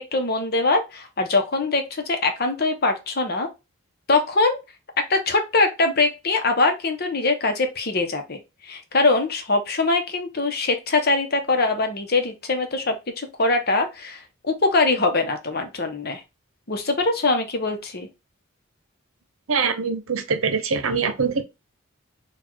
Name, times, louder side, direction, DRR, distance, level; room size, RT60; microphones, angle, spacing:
voice 1, 0.0-3.5 4.1-4.6 5.0-16.2 16.7-18.1, left 3 dB, 50° left, 0.9 m, -22 dB
voice 2, 19.5-21.4, right 5 dB, 80° right, 0.8 m, -23 dB
4.2 x 2.4 x 4.5 m
head